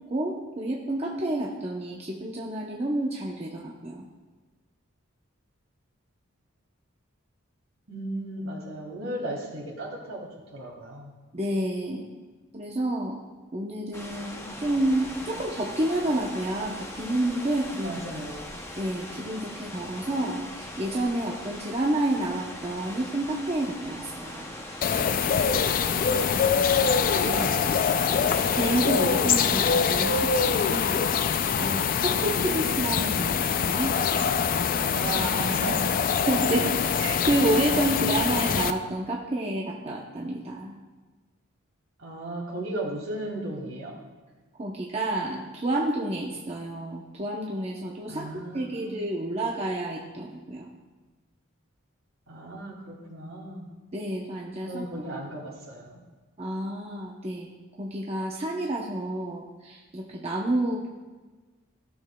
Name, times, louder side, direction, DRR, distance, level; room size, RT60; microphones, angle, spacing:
voice 1, 0.1-4.0 11.3-12.1 12.5-13.2 13.5-17.9 18.8-24.5 28.5-34.0 36.3-40.7 44.6-48.3 48.5-50.7 53.9-54.8 56.4-57.5 57.8-60.9, right 1 dB, 30° right, -2 dB, 0.7 m, -29 dB
voice 2, 7.9-11.1 17.8-18.5 25.8-26.6 27.0-28.1 34.9-36.1 36.5-36.8 42.0-43.9 48.1-48.9 52.3-53.7 54.6-56.0, right 1 dB, 70° right, -2 dB, 2.5 m, -35 dB
sound 1, 13.9-28.7, left 1 dB, 10° left, 0.7 m, -40 dB
sound 2, 24.8-38.7, left 6 dB, 40° left, 0.3 m, -24 dB
16.5 x 7.1 x 2.3 m, 1.3 s
head